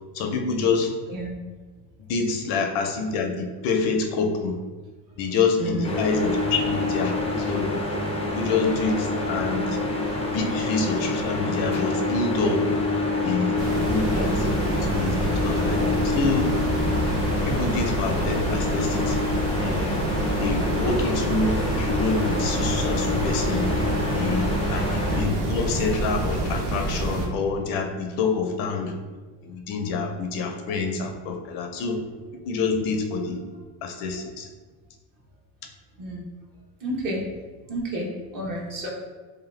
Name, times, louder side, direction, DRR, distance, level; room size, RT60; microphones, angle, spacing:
voice 1, 0.1-0.9 2.1-4.6 5.2-7.1 7.5-7.7 8.4-9.6 10.3-12.6 13.2-13.6 13.9-16.5 17.5-19.2 19.6-23.7 24.1-29.0 29.4-32.0 32.5-33.4 33.8-34.5, left 4 dB, 75° left, 4 dB, 0.6 m, -27 dB
voice 2, 1.1-1.4 5.3-5.9 24.6-24.8 36.0-36.3 36.8-37.2 37.7-38.9, right 1 dB, 45° right, -2 dB, 1.0 m, -31 dB
sound 1, 5.8-25.2, left 2 dB, 15° left, 0.3 m, -27 dB
sound 2, 13.6-27.3, right 2 dB, 85° right, 0.8 m, -27 dB
2.8 x 2.2 x 3.1 m, 1.3 s
cardioid pair, 115°, 45 cm